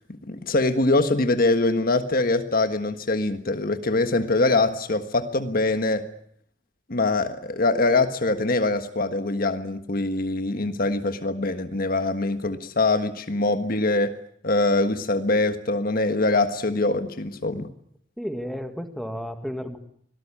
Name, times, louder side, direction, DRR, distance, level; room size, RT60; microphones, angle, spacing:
voice 1, 0.3-6.1 6.9-14.2 14.4-17.7, left 2 dB, 50° left, 8 dB, 1.5 m, -23 dB
voice 2, 18.2-19.8, equal, ahead, 6 dB, 2.0 m, -32 dB
25.5 x 18.5 x 8.7 m, 0.66 s
head